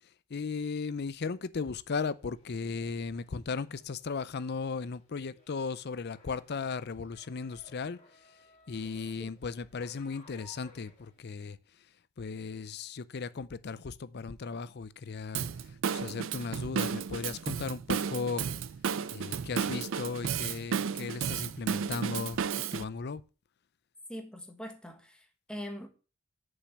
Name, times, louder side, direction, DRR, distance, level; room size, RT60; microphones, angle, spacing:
voice 1, 0.3-8.0 8.7-11.6 12.2-18.5 19.1-22.4 22.7-23.2, left 4 dB, 50° left, 0.5 m, -36 dB
sound 1, 1.9-11.2, left 2 dB, 30° left, 2.5 m, -61 dB
Drum kit / Drum, 15.3-22.8, right 7 dB, 60° right, 0.4 m, -33 dB
voice 2, 24.1-25.9, equal, 5° left, 1.3 m, -42 dB
6.8 x 5.4 x 7.1 m
head